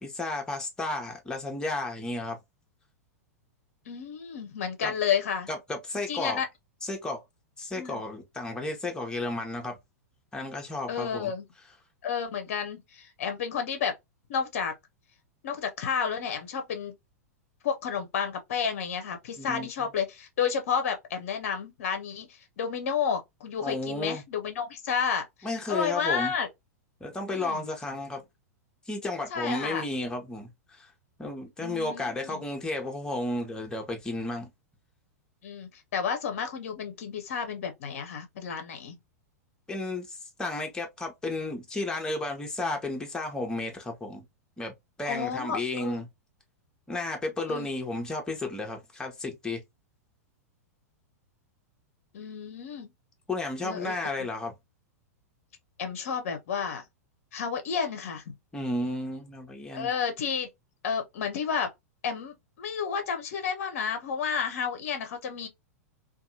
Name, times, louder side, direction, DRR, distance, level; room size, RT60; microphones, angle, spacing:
voice 1, 0.0-2.4 4.8-4.9 5.5-6.4 6.8-7.2 7.6-9.8 10.3-11.3 19.4-19.7 23.6-24.2 25.4-26.3 27.0-28.2 28.9-30.9 31.2-34.5 39.7-44.2 44.6-44.7 45.0-46.1 46.9-49.6 53.3-54.5 58.5-59.9, left 2 dB, 10° left, 0.8 m, -33 dB
voice 2, 3.9-5.5 6.1-6.5 7.7-8.0 10.9-11.4 12.0-13.9 14.3-14.7 15.4-16.9 17.6-25.3 25.7-26.5 27.3-27.6 29.3-29.8 31.6-32.4 35.4-39.0 45.1-46.0 47.5-47.7 52.1-52.9 53.6-54.0 55.8-56.8 57.3-58.3 59.7-60.5 60.8-61.7 62.0-65.5, left 6 dB, 55° left, 0.6 m, -31 dB
2.7 x 2.3 x 2.6 m
figure-of-eight pair, 95°, 9 cm